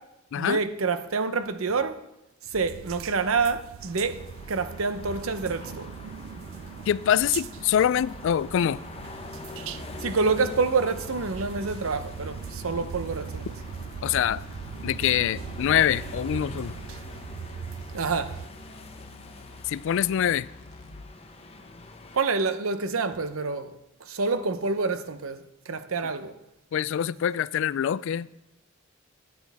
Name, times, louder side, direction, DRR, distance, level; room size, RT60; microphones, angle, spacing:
voice 1, 0.4-2.0 2.5-4.2 4.5-5.9 10.0-13.5 17.9-18.3 22.1-23.7 24.0-26.3, right 4 dB, 90° right, 0.8 m, -27 dB
sound 1, 2.5-18.5, right 7 dB, 70° right, 0.3 m, -40 dB
sound 2, 3.8-22.2, left 2 dB, 30° left, 0.9 m, -44 dB
voice 2, 6.9-8.8 14.0-14.4 14.8-16.7 19.7-20.5 26.7-28.3, left 9 dB, 65° left, 0.3 m, -24 dB
sound 3, 11.7-21.1, left 3 dB, 90° left, 1.0 m, -49 dB
13.5 x 9.5 x 3.5 m
head